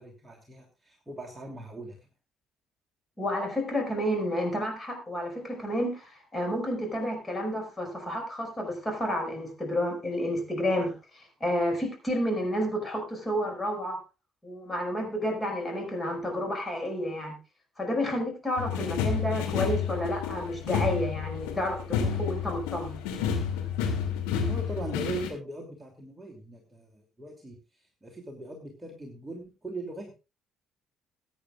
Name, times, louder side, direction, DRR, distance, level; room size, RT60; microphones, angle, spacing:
voice 1, 0.0-2.1 24.5-30.1, right 2 dB, 10° right, -1 dB, 2.8 m, -40 dB
voice 2, 3.2-14.0 14.4-17.4 17.8-23.0, equal, 15° left, 3 dB, 5.5 m, -30 dB
sound 1, 18.6-25.3, left 7 dB, 70° left, 2.7 m, -30 dB
21.0 x 9.3 x 2.5 m, 0.30 s
figure-of-eight pair, 50°, 0 cm